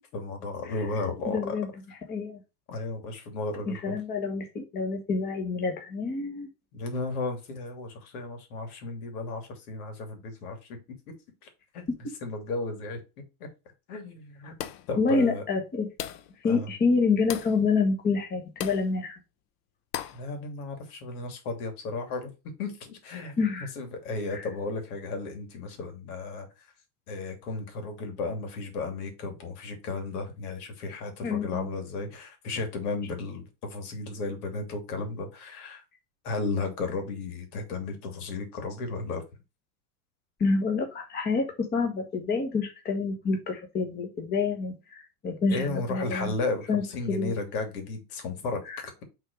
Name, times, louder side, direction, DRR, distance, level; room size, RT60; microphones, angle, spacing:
voice 1, 0.1-1.5 2.7-4.0 6.7-10.8 11.7-11.8 12.2-13.0 13.4-13.5 13.9-14.5 14.9-15.4 16.4-16.7 20.1-22.3 22.6-23.4 23.8-26.5 27.1-35.8 36.2-39.2 45.5-49.0, left 3 dB, 75° left, 5 dB, 2.8 m, -34 dB
voice 2, 0.6-2.4 3.6-6.5 11.9-12.0 14.9-15.9 16.4-19.1 23.4-23.7 24.3-24.5 31.2-31.7 40.4-46.4 46.7-47.3 48.6-48.8, left 4 dB, 20° left, 2 dB, 1.4 m, -28 dB
sound 1, 14.6-15.0 16.0-16.3 17.3-17.6 18.6-18.9 19.9-20.3, left 11 dB, 35° left, 0.6 m, -36 dB
6.3 x 3.9 x 4.9 m, 0.27 s
supercardioid pair, 150°, 45 cm